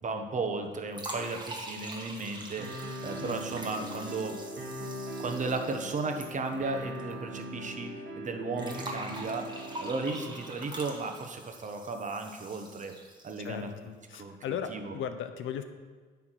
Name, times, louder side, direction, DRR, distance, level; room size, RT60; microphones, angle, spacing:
voice 1, 0.0-4.3 5.2-12.9 13.2-13.7 14.1-14.9, right 3 dB, 40° right, 5 dB, 1.0 m, -35 dB
sound 1, 0.9-7.1 7.4-7.5 8.6-13.6, right 1 dB, 20° right, 1.3 m, -44 dB
sound 2, 2.6-10.6, right 1 dB, 65° right, 1.4 m, -41 dB
voice 2, 13.4-15.6, left 8 dB, 80° left, 9 dB, 0.7 m, -37 dB
9.8 x 3.6 x 6.2 m, 1.5 s
cardioid pair, 90°, 20 cm